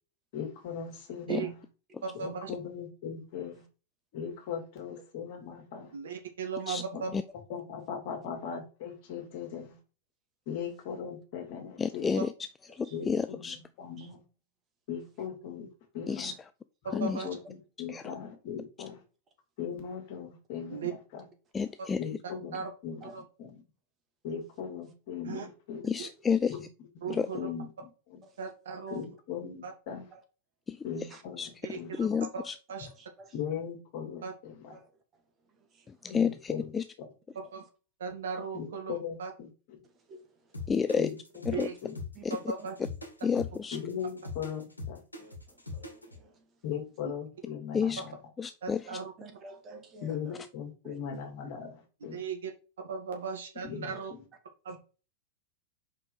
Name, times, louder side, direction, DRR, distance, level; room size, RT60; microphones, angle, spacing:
voice 1, 0.3-1.6 2.1-3.6 4.1-5.9 6.9-7.2 7.5-9.8 10.5-12.2 12.9-14.2 14.9-16.4 16.9-19.0 19.6-21.3 22.0-23.1 23.4-23.5 24.2-25.8 26.5-26.6 27.0-28.2 28.9-30.1 30.8-31.9 33.3-34.8 36.1-36.7 38.5-39.8 41.0-41.2 41.5-41.9 43.7-45.0 46.6-48.2 50.0-52.2 53.6-54.2 54.7-54.8, left 7 dB, 50° left, 2.2 m, -39 dB
voice 2, 2.0-2.5 5.9-7.1 17.0-17.3 20.7-20.9 22.5-22.7 23.1-23.2 25.2-25.5 26.0-26.1 27.0-27.5 28.4-29.0 29.6-29.7 31.6-32.1 32.3-32.4 32.7-32.9 34.2-34.3 37.4-37.6 38.0-39.3 41.5-41.7 42.3-42.7 47.0-47.1 48.6-49.1 52.1-52.5 52.8-54.1 54.7-54.8, right 6 dB, 65° right, 1.6 m, -37 dB
voice 3, 11.8-12.3 12.7-13.6 16.1-16.3 16.9-17.2 17.9-18.0 21.5-22.0 25.8-26.5 27.1-27.3 30.7-30.8 31.4-31.5 32.0-32.6 36.0-36.8 40.7-41.1 41.5-41.7 42.2-42.4 43.2-43.8 47.7-48.0 48.4-49.0, left 6 dB, 15° left, 0.3 m, -30 dB
voice 4, 32.8-33.4 34.7-36.3 36.7-36.9 37.3-37.5 39.8-41.1 41.5-41.7 42.1-42.7 45.2-46.6 48.8-50.4 50.8-51.0 53.8-54.0 54.7-54.8, right 3 dB, 25° right, 1.6 m, -53 dB
sound 1, 40.5-46.2, left 3 dB, 85° left, 1.4 m, -41 dB
5.2 x 4.5 x 4.7 m
figure-of-eight pair, 90°, 0 cm